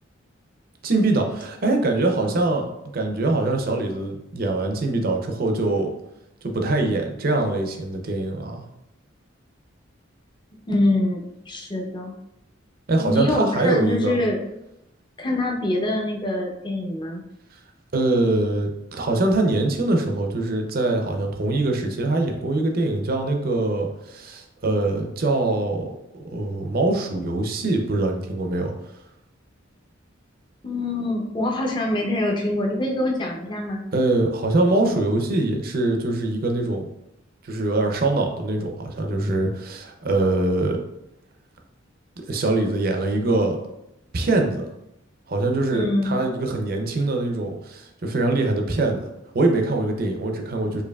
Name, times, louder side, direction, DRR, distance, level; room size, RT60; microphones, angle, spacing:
voice 1, 0.8-2.7 2.9-5.9 6.4-8.7 12.9-14.2 17.9-25.9 26.1-28.7 33.9-36.9 37.4-40.8 42.3-43.6 44.1-44.7 45.3-49.1 49.3-50.8, right 2 dB, 50° right, 3 dB, 0.5 m, -23 dB
voice 2, 10.7-12.1 13.0-14.4 15.2-17.2 30.6-33.8 45.7-46.2, left 1 dB, 25° left, 0 dB, 0.5 m, -24 dB
4.7 x 2.7 x 2.3 m, 0.85 s
head